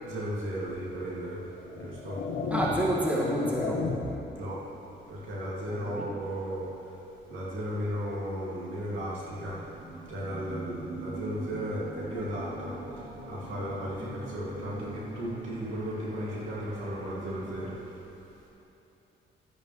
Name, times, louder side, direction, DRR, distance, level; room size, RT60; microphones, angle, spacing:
voice 1, 0.0-1.4 1.7-2.2 4.4-4.6 5.1-6.7 7.3-9.6 10.1-12.7 13.3-17.7, equal, 80° right, -6 dB, 2.6 m, -35 dB
sound 1, 0.7-0.8 1.6-4.3, left 4 dB, 85° left, 1.7 m, -34 dB
voice 2, 2.5-3.8 5.7-6.1, equal, 5° right, -5 dB, 2.1 m, -28 dB
sound 2, 8.9-17.8, right 2 dB, 30° right, 1.6 m, -43 dB
13.0 x 10.5 x 3.3 m, 3.0 s
cardioid pair, 90°, 20 cm